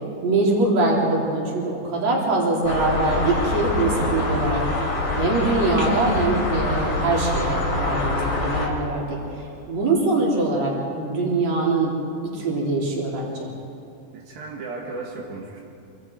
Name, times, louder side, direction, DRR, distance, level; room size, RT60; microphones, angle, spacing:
voice 1, 0.2-4.6 5.2-9.2 9.7-11.9 12.3-13.5, right 2 dB, 50° right, -3 dB, 4.9 m, -23 dB
sound 1, 2.6-8.7, left 2 dB, 40° left, 3.9 m, -25 dB
voice 2, 14.1-15.6, right 3 dB, 80° right, -3 dB, 3.9 m, -35 dB
27.0 x 26.0 x 4.8 m, 2.7 s
omnidirectional pair, 4.1 m